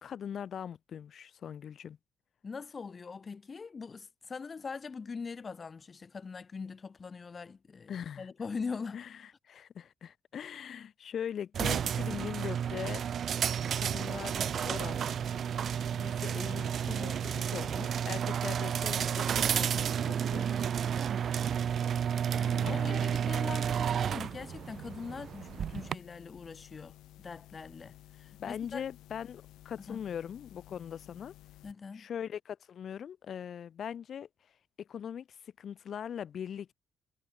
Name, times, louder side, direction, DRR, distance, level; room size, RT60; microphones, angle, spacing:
voice 1, 0.0-2.0 7.9-8.3 8.9-13.0 13.8-15.1 16.0-20.7 22.6-23.1 28.4-31.3 31.9-34.3 34.8-36.7, left 8 dB, 40° left, 1.0 m, -41 dB
voice 2, 2.4-7.9 8.2-9.0 22.3-28.8 29.9-30.0 31.6-32.1, left 5 dB, 25° left, 2.0 m, -42 dB
sound 1, 11.5-25.9, right 8 dB, 40° right, 0.7 m, -31 dB
sound 2, 13.6-31.7, left 15 dB, 85° left, 2.6 m, -55 dB
cardioid pair, 180°, 0 cm